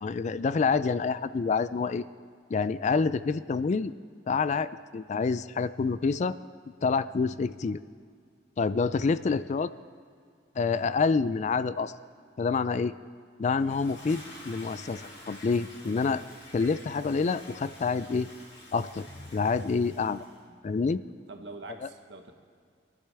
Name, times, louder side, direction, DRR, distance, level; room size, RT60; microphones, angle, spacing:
voice 1, 0.0-2.0 2.5-3.9 4.3-6.4 6.8-7.8 8.6-9.7 10.6-11.9 12.4-12.9 13.4-16.2 16.5-18.3 18.7-19.1 19.3-20.3 20.6-21.0, left 4 dB, 40° left, 15 dB, 0.3 m, -27 dB
Toilet flush, 13.5-20.4, left 1 dB, 85° left, 4.4 m, -48 dB
voice 2, 21.3-22.3, right 3 dB, 70° right, 5 dB, 1.2 m, -45 dB
22.5 x 12.0 x 3.4 m, 2.2 s
head